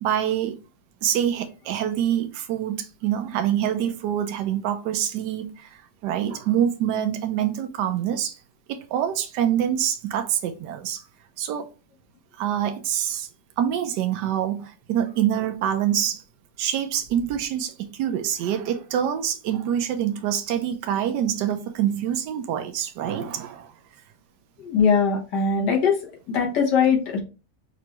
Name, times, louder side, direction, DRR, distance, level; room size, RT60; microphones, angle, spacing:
voice 1, 0.0-0.6 1.0-8.4 8.7-11.0 11.4-11.7 12.3-13.3 13.6-16.2 16.6-23.7, right 10 dB, 85° right, 1.2 m, -25 dB
voice 2, 24.6-26.0 26.3-27.2, left 6 dB, 80° left, 1.9 m, -21 dB
5.6 x 2.6 x 3.0 m
omnidirectional pair, 1.8 m